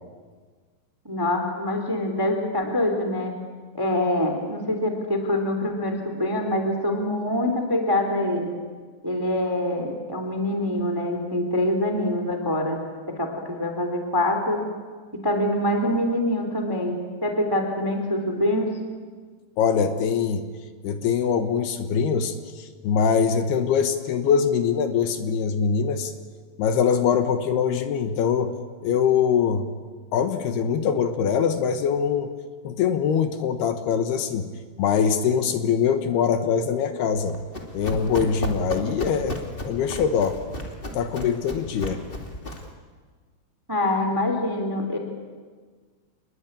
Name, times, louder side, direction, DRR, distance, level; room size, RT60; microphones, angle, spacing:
voice 1, 1.0-3.3 3.7-8.6 9.0-12.8 13.2-14.6 15.2-18.7 43.7-45.0, left 1 dB, 5° right, 4 dB, 2.1 m, -25 dB
voice 2, 19.6-20.4 20.8-26.1 26.6-28.5 28.8-29.7 30.1-32.3 32.6-34.5 34.8-37.4 37.7-39.4 39.6-40.4 40.9-42.0, left 7 dB, 70° left, 8 dB, 3.1 m, -23 dB
Run, 37.2-42.7, left 1 dB, 20° left, 1.6 m, -34 dB
28.0 x 21.0 x 8.9 m, 1.5 s
omnidirectional pair, 5.0 m